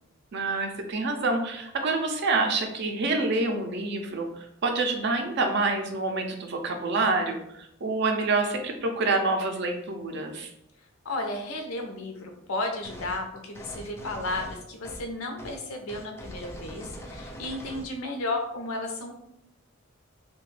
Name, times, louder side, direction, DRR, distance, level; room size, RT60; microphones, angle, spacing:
voice 1, 0.3-10.5, right 3 dB, 55° right, 4 dB, 0.4 m, -27 dB
voice 2, 11.0-19.1, left 2 dB, 85° left, 3 dB, 0.6 m, -33 dB
sound 1, 12.8-13.2 13.5-15.1 15.4-15.6 15.9-17.9, equal, 10° left, 0.3 m, -42 dB
2.8 x 2.2 x 3.1 m, 0.78 s
head